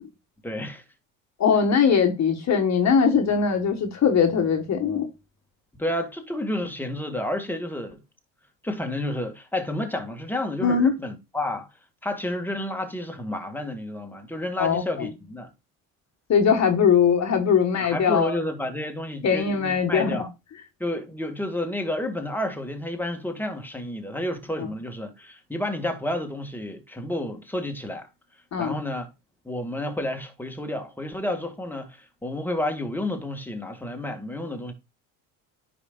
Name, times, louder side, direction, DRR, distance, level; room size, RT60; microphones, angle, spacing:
voice 1, 0.4-0.8 5.7-8.0 8.6-11.7 12.0-15.5 17.8-20.3 20.8-28.1 28.6-29.1 29.5-34.7, left 1 dB, 5° left, 2.0 m, -30 dB
voice 2, 1.4-5.1 10.6-10.9 14.6-15.1 16.3-18.4 19.2-20.2 24.6-24.7 28.5-28.7, left 6 dB, 40° left, 1.6 m, -21 dB
9.9 x 5.3 x 2.4 m
supercardioid pair, 85°, 41 cm